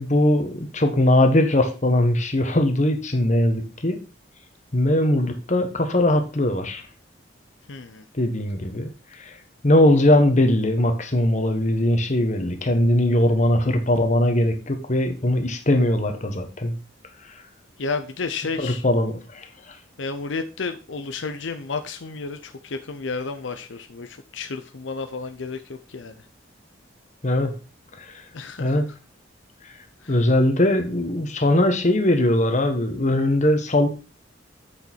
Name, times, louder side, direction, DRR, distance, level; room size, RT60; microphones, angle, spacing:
voice 1, 0.0-4.0 4.7-6.8 8.2-8.9 9.2-9.3 9.6-16.7 18.6-19.5 27.2-27.5 28.0-28.1 28.6-28.8 30.1-33.9, left 1 dB, 40° left, 7 dB, 1.4 m, -20 dB
voice 2, 7.7-8.0 17.8-18.8 20.0-26.3 28.3-28.9 30.0-30.2, left 4 dB, 80° left, 8 dB, 0.7 m, -32 dB
8.4 x 6.6 x 4.5 m, 0.33 s
head